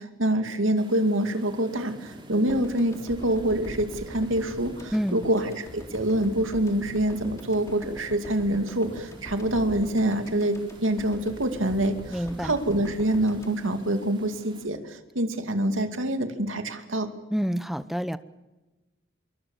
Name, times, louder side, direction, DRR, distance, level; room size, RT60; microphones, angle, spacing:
voice 1, 0.0-17.1, right 1 dB, 85° right, 7 dB, 2.5 m, -26 dB
sound 1, 0.8-14.7, right 1 dB, 25° right, 3.0 m, -49 dB
sound 2, 2.5-14.7, left 1 dB, 15° left, 3.6 m, -43 dB
voice 2, 12.1-12.5 17.3-18.2, equal, ahead, 13 dB, 0.8 m, -28 dB
26.0 x 23.5 x 7.4 m, 1.1 s
head